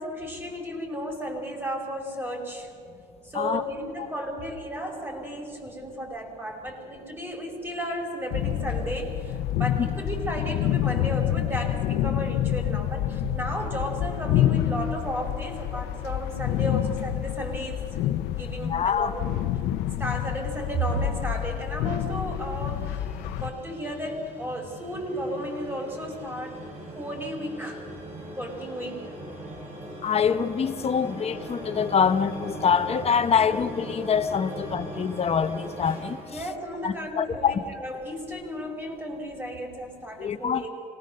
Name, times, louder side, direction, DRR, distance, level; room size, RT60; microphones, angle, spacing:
voice 1, 0.0-2.7 3.2-19.4 20.0-26.6 27.0-27.8 28.4-29.0 36.3-40.7, right 1 dB, 15° right, 1 dB, 5.4 m, -34 dB
sound 1, 8.3-23.5, left 12 dB, 85° left, 0.8 m, -28 dB
voice 2, 18.6-19.1 30.0-36.2 36.8-37.6 40.2-40.7, left 7 dB, 35° left, 10 dB, 0.9 m, -25 dB
sound 2, 21.1-37.3, right 1 dB, 40° right, 6.9 m, -40 dB
26.0 x 19.0 x 6.7 m, 2.2 s
cardioid pair, 110°, 17 cm